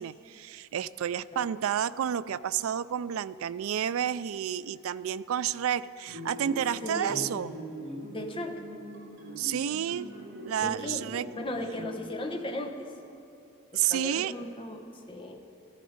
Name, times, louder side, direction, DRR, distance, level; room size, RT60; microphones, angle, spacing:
voice 1, 0.0-7.5 9.4-10.1 10.4-11.2 13.7-14.3, right 9 dB, 80° right, 16 dB, 0.3 m, -30 dB
sound 1, 6.0-12.0, equal, 60° right, 2.7 m, -42 dB
voice 2, 6.8-7.3 8.1-8.6 10.6-11.0 11.3-12.9 13.7-15.4, left 1 dB, 25° left, 3 dB, 0.9 m, -36 dB
14.0 x 12.5 x 5.0 m, 2.8 s
head